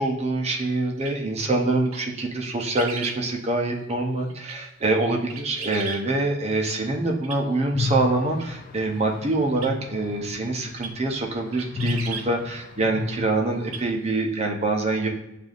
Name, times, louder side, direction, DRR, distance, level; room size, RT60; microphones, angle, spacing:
voice 1, 0.0-15.1, right 2 dB, 30° right, 1 dB, 0.6 m, -25 dB
sound 1, 1.0-1.1 1.8-2.0 2.4-3.2 4.3-4.6 5.1-6.0 7.2-7.4 8.4-8.5 9.6-9.7 10.8-10.9 11.2-11.3 11.5-12.3 13.6-13.8 14.1-14.2, right 5 dB, 90° right, 0.5 m, -36 dB
sound 2, 7.7-13.9, left 4 dB, 45° left, 0.3 m, -33 dB
6.6 x 2.5 x 2.4 m, 0.90 s
head